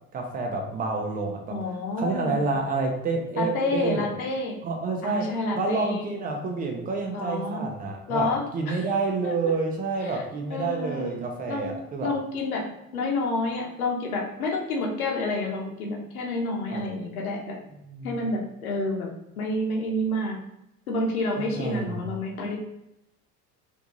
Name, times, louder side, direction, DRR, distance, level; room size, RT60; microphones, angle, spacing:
voice 1, 0.1-1.6 2.0-4.1 4.6-12.1 16.7-16.8 17.8-18.3 21.4-22.1, right 3 dB, 20° right, 2 dB, 0.6 m, -29 dB
voice 2, 1.5-2.4 3.4-4.6 5.0-6.2 7.1-7.6 8.1-8.4 8.7-8.8 9.2-9.5 10.0-10.2 10.5-11.2 11.5-11.7 12.0-12.6 12.9-17.5 18.0-19.1 19.4-20.4 20.9-22.6, left 2 dB, 65° left, -1 dB, 0.9 m, -29 dB
3.5 x 2.5 x 2.9 m, 0.86 s
figure-of-eight pair, 75°, 47 cm